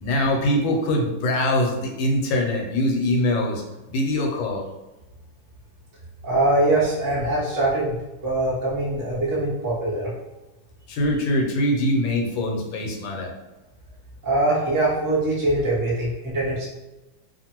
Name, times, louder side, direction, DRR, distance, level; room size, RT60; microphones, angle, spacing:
voice 1, 0.0-3.6 3.9-4.6 10.9-13.3, left 1 dB, 85° left, 1 dB, 1.4 m, -23 dB
voice 2, 6.2-10.1 14.2-16.7, right 2 dB, 30° right, -7 dB, 0.3 m, -23 dB
2.8 x 2.5 x 2.9 m, 1.0 s
omnidirectional pair, 2.1 m